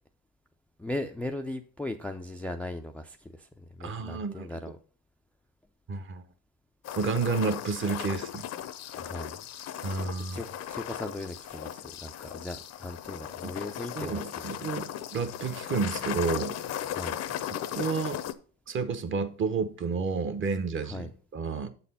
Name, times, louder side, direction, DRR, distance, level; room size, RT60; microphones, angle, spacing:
voice 1, 0.8-4.8 8.9-9.4 10.3-14.2 16.9-17.2 20.9-21.1, left 1 dB, 5° left, 0.4 m, -38 dB
voice 2, 3.8-4.5 5.9-6.2 7.0-8.5 9.8-10.4 13.4-13.5 13.9-16.5 17.7-18.2 18.7-21.7, right 5 dB, 35° right, 0.9 m, -30 dB
sound 1, 6.8-18.3, left 11 dB, 45° left, 0.6 m, -37 dB
7.3 x 4.2 x 5.6 m
supercardioid pair, 105°, 35 cm